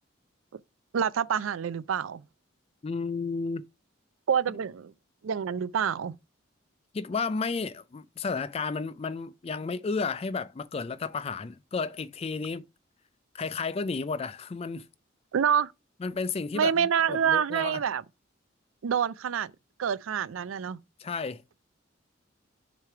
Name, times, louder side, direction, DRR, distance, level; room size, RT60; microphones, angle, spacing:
voice 1, 0.9-2.2 4.3-4.9 5.2-6.1 15.3-15.7 16.5-18.0 18.8-19.5 19.8-20.8, right 8 dB, 85° right, 0.4 m, -27 dB
voice 2, 2.8-3.6 6.9-12.6 13.3-14.9 16.0-17.8 21.0-21.4, left 4 dB, 30° left, 0.3 m, -32 dB
6.7 x 3.3 x 5.7 m
head